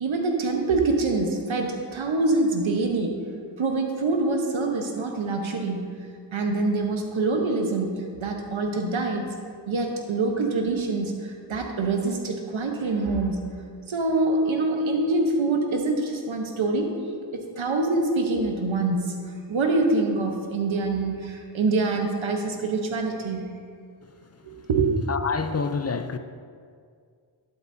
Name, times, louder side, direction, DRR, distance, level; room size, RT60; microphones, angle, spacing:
voice 1, 0.0-3.2 3.6-5.9 6.3-9.3 9.7-13.4 13.9-16.9 17.3-19.1 19.5-23.4 24.4-24.9, right 3 dB, 90° right, 1.1 m, -25 dB
voice 2, 25.1-26.2, left 5 dB, 35° left, 0.5 m, -27 dB
11.5 x 8.6 x 2.7 m
cardioid pair, 40°, 46 cm